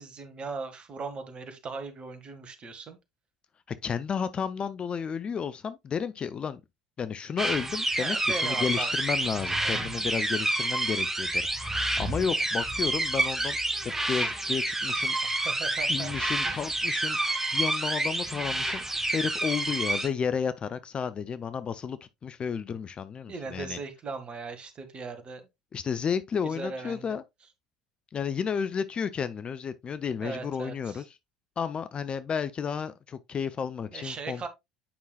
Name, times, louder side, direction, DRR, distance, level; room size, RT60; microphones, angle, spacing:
voice 1, 0.0-3.0 8.0-8.9 9.6-9.8 15.4-16.1 23.3-25.4 26.4-27.2 30.2-31.0 33.9-34.5, right 4 dB, 35° right, 1.7 m, -38 dB
voice 2, 3.8-6.6 7.0-13.6 14.1-15.2 15.9-23.8 25.7-27.2 28.1-31.2 31.6-34.5, left 6 dB, 30° left, 0.5 m, -32 dB
sound 1, 7.4-20.1, right 2 dB, 10° right, 1.6 m, -29 dB
8.6 x 5.5 x 2.3 m
figure-of-eight pair, 65°, 3 cm